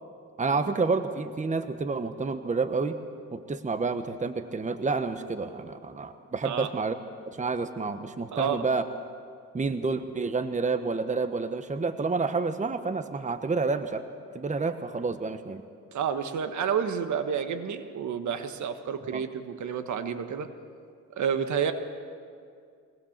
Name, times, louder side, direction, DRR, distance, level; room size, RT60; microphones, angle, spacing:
voice 1, 0.4-3.0 3.3-6.9 7.2-8.8 9.5-14.0 14.3-15.6 19.1-19.2, right 4 dB, 25° right, 9 dB, 1.1 m, -29 dB
voice 2, 8.3-8.6 15.9-20.5 21.2-21.7, right 7 dB, 65° right, 9 dB, 1.5 m, -30 dB
23.0 x 18.5 x 7.4 m, 2.3 s
cardioid pair, 90°, 31 cm